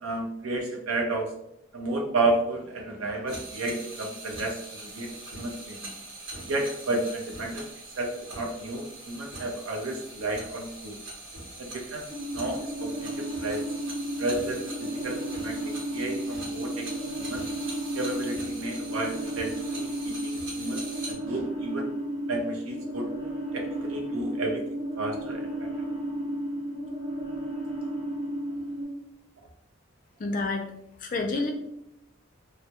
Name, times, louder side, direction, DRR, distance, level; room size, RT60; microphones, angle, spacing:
voice 1, 0.0-1.3 1.7-4.6 4.9-5.9 6.5-7.6 8.0-11.0 11.6-12.0 12.3-13.6 14.2-15.6 15.9-16.9 17.2-17.4 17.9-20.8 21.1-21.9 22.3-23.1 23.5-24.7 25.0-25.7, right 2 dB, 85° right, 2 dB, 0.5 m, -32 dB
sound 1, 3.3-21.1, right 2 dB, 60° right, 0.9 m, -42 dB
sound 2, 12.1-28.8, right 1 dB, 25° right, 0.7 m, -33 dB
voice 2, 30.2-30.6 31.0-31.5, left 3 dB, 40° left, 3 dB, 0.3 m, -28 dB
2.2 x 2.0 x 2.8 m, 0.77 s
head